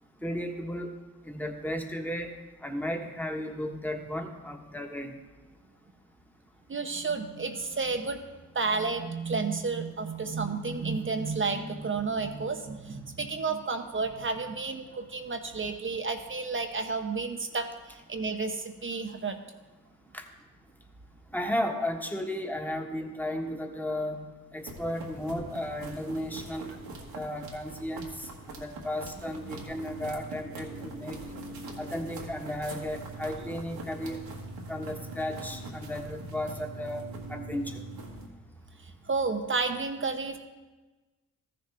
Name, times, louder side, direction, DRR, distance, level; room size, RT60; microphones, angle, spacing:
voice 1, 0.2-0.9 1.2-2.3 2.6-5.2 20.1-20.3 21.3-24.2 24.5-26.7 27.1-31.2 31.8-34.2 34.7-37.8, left 1 dB, 5° left, 3 dB, 1.3 m, -34 dB
voice 2, 6.7-8.2 8.5-19.4 29.5-29.6 38.8-40.4, right 4 dB, 35° right, 6 dB, 0.9 m, -31 dB
sound 1, 24.6-38.3, right 2 dB, 80° right, 1.6 m, -42 dB
14.0 x 6.8 x 3.4 m, 1.2 s
cardioid pair, 55°, 36 cm